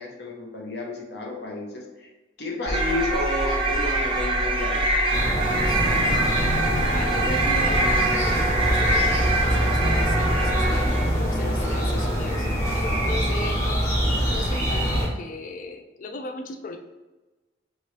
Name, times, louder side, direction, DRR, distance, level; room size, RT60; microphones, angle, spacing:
voice 1, 0.0-2.1 2.4-4.8, left 2 dB, 60° left, 0 dB, 0.7 m, -31 dB
sound 1, 2.7-11.2, right 1 dB, 25° right, 0.4 m, -24 dB
sound 2, 5.1-15.1, equal, 15° left, 0.8 m, -24 dB
voice 2, 5.5-6.2 6.9-16.8, left 3 dB, 45° left, 6 dB, 0.3 m, -37 dB
3.0 x 2.8 x 3.1 m, 1.2 s
head